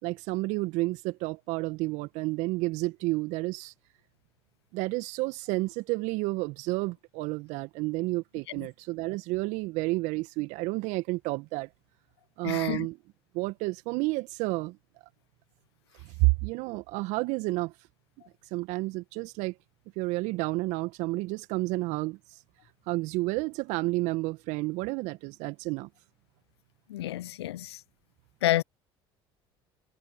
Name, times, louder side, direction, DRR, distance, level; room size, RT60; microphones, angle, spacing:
voice 1, 0.0-3.7 4.7-11.7 12.4-13.0 13.3-14.8 16.2-17.7 18.5-19.5 20.0-22.2 22.9-25.9, right 22 dB, 65° right, 1.8 m, -30 dB
voice 2, 12.4-12.9 26.9-27.8 28.4-28.6, left 14 dB, 80° left, 0.5 m, -29 dB
hypercardioid pair, 65°, 13 cm